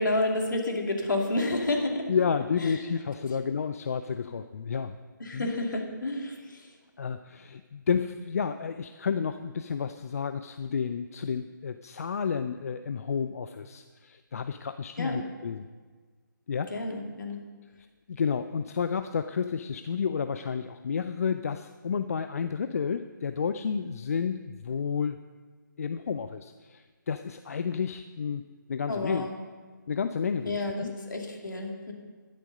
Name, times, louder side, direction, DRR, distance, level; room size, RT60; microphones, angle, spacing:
voice 1, 0.0-2.1 2.6-2.8 5.2-6.7 15.0-15.2 16.7-17.4 28.9-29.4 30.4-31.9, left 2 dB, 70° left, 2 dB, 2.6 m, -30 dB
voice 2, 2.1-4.9 5.3-5.5 7.0-15.6 16.5-16.7 18.1-25.2 25.8-29.3 29.9-30.9, left 6 dB, 45° left, 10 dB, 0.5 m, -31 dB
11.5 x 10.5 x 5.3 m, 1.4 s
figure-of-eight pair, 150°, 11 cm